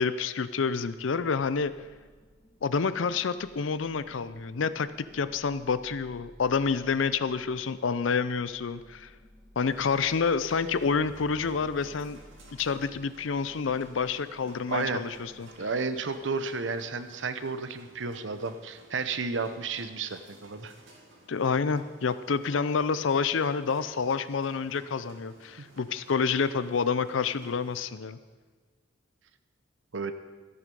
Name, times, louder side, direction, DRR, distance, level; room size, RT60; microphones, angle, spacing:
voice 1, 0.0-1.7 2.6-9.1 9.6-12.2 12.5-15.5 21.3-28.2, left 5 dB, 80° left, 14 dB, 0.5 m, -28 dB
sound 1, 0.9-16.8, left 1 dB, 20° left, 1.8 m, -56 dB
sound 2, 9.6-27.8, right 2 dB, 90° right, 2.4 m, -56 dB
Guitar, 10.5-12.5, right 2 dB, 30° right, 2.1 m, -53 dB
voice 2, 14.7-15.0 15.6-20.7 25.6-25.7 29.9-30.1, right 4 dB, 70° right, 10 dB, 0.8 m, -32 dB
14.0 x 8.6 x 5.4 m, 1.5 s
head